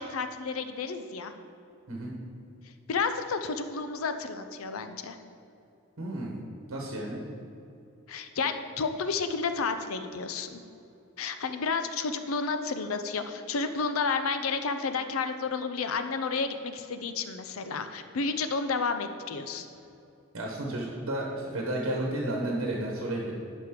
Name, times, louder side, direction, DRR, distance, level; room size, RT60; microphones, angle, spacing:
voice 1, 0.0-1.3 2.9-5.2 8.1-10.6 11.2-19.7, left 4 dB, 80° left, 9 dB, 0.5 m, -31 dB
voice 2, 6.0-6.4 6.7-7.2 20.3-23.4, right 1 dB, 75° right, -1 dB, 1.1 m, -32 dB
11.0 x 5.2 x 3.7 m, 2.7 s
head